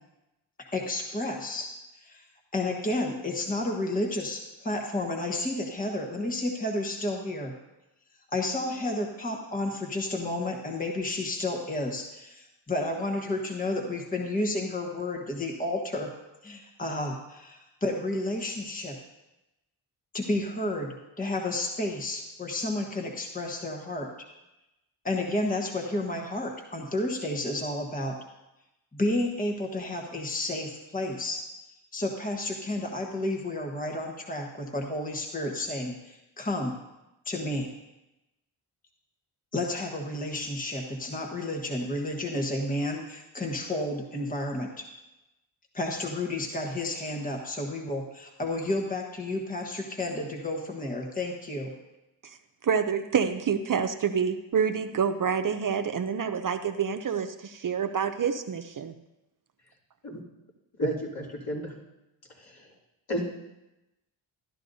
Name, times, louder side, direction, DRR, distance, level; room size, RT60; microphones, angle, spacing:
voice 1, 0.7-1.7 2.0-2.2 2.5-7.5 8.3-16.1 16.4-19.0 20.1-24.1 25.0-28.2 28.9-31.4 31.9-36.8 37.2-37.7 39.5-44.8 45.7-51.7, left 1 dB, 20° left, 1 dB, 1.3 m, -31 dB
voice 2, 52.6-58.9, right 7 dB, 45° right, 8 dB, 0.6 m, -27 dB
voice 3, 60.8-61.7 62.4-62.7 63.1-63.2, equal, 50° left, -5 dB, 3.2 m, -31 dB
12.0 x 12.0 x 2.7 m, 0.96 s
cardioid pair, 60°, 46 cm